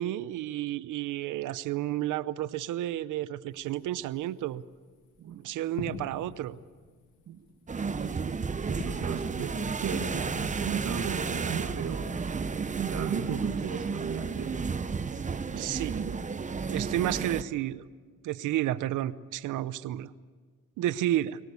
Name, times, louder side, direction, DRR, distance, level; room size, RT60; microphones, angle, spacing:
voice 1, 0.0-4.6 5.4-6.6 15.6-16.0 16.7-17.8 18.2-20.1 20.8-21.4, right 13 dB, 85° right, 15 dB, 0.8 m, -31 dB
sound 1, 3.5-12.7, left 3 dB, 90° left, 2.7 m, -47 dB
sound 2, 7.7-17.4, right 5 dB, 25° right, 0.9 m, -32 dB
voice 2, 7.9-12.1 12.8-14.6 15.5-16.2, right 7 dB, 65° right, 4 dB, 2.1 m, -35 dB
23.5 x 18.5 x 8.4 m, 1.5 s
cardioid pair, 90°, 30 cm